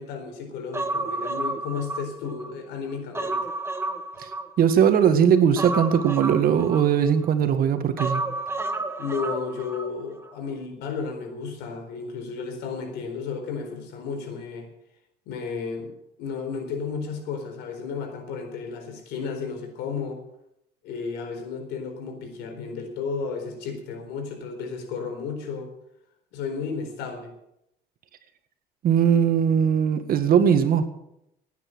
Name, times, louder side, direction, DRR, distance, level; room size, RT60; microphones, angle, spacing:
voice 1, 0.0-3.4 9.0-14.7 15.3-15.9 16.2-20.2 20.8-25.7 26.3-27.3, left 5 dB, 90° left, 5 dB, 4.3 m, -33 dB
Human voice, 0.7-2.5 2.9-4.9 5.6-7.3 8.0-9.9 10.2-10.3, right 2 dB, 15° right, 1.6 m, -31 dB
voice 2, 4.6-8.2 28.8-30.9, right 8 dB, 60° right, 9 dB, 1.9 m, -20 dB
18.5 x 9.5 x 6.4 m, 0.80 s
cardioid pair, 110°, 17 cm